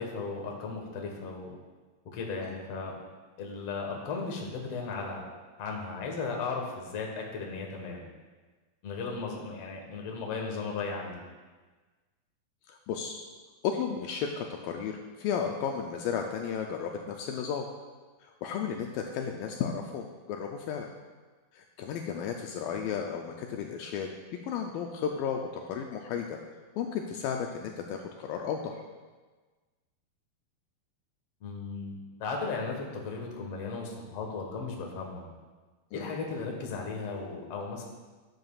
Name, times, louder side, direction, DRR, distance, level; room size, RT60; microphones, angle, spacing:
voice 1, 0.0-1.5 2.1-2.9 3.4-5.2 5.6-8.0 8.8-11.2 31.4-35.2 35.9-37.9, left 4 dB, 55° left, 0 dB, 1.9 m, -36 dB
voice 2, 12.7-13.2 13.6-17.7 18.2-20.9 21.5-24.1 24.4-26.4 26.8-28.8 35.9-36.1, left 7 dB, 80° left, 2 dB, 2.2 m, -34 dB
13.0 x 9.3 x 2.4 m, 1.3 s
omnidirectional pair, 4.3 m